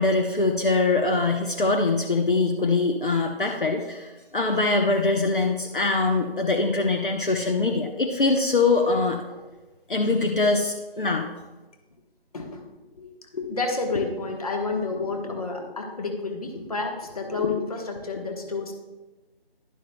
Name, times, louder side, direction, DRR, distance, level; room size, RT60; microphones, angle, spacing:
voice 1, 0.0-9.2 9.9-11.3, left 3 dB, 55° left, 2 dB, 1.0 m, -23 dB
voice 2, 13.0-18.7, left 3 dB, 40° left, 2 dB, 1.2 m, -30 dB
11.0 x 11.0 x 2.3 m, 1.2 s
figure-of-eight pair, 170°, 30 cm